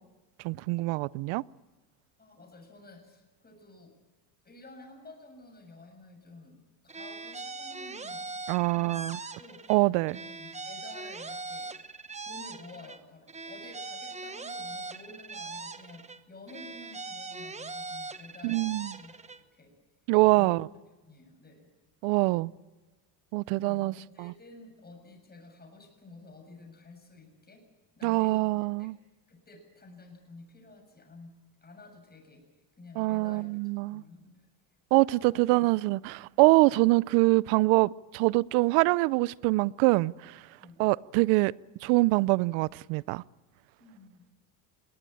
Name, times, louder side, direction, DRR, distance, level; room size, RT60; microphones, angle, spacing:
voice 1, 0.4-1.4 8.5-9.2 9.7-10.2 18.4-18.9 20.1-20.7 22.0-22.5 23.3-24.3 28.0-29.0 33.0-34.0 34.9-40.4 40.8-41.5 41.8-43.2, right 23 dB, 75° right, 0.6 m, -24 dB
voice 2, 2.2-3.9 4.4-6.6 6.8-8.3 8.6-9.0 9.4-9.8 10.1-11.7 12.2-19.7 20.3-20.7 21.0-21.7 23.5-27.6 28.0-28.5 28.8-28.9 29.3-31.3 31.6-32.4 32.8-33.5 33.9-34.5 35.2-35.7 40.6-40.8 43.8-44.2, left 2 dB, 20° left, 7.2 m, -51 dB
sound 1, 6.9-9.8 10.1-13.0 13.3-16.2 16.5-19.4, right 3 dB, 15° right, 1.0 m, -41 dB
21.0 x 18.0 x 9.0 m
supercardioid pair, 110°, 49 cm